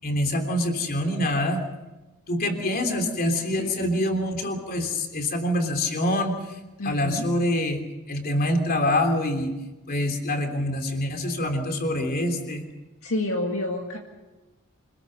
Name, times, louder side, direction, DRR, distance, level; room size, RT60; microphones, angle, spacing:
voice 1, 0.0-1.6 2.3-6.4 6.8-9.5 9.9-12.6, left 1 dB, 40° left, 4 dB, 3.3 m, -25 dB
voice 2, 6.8-7.3 13.0-14.0, left 1 dB, 65° left, 1 dB, 2.1 m, -29 dB
26.0 x 20.5 x 6.6 m, 1.1 s
head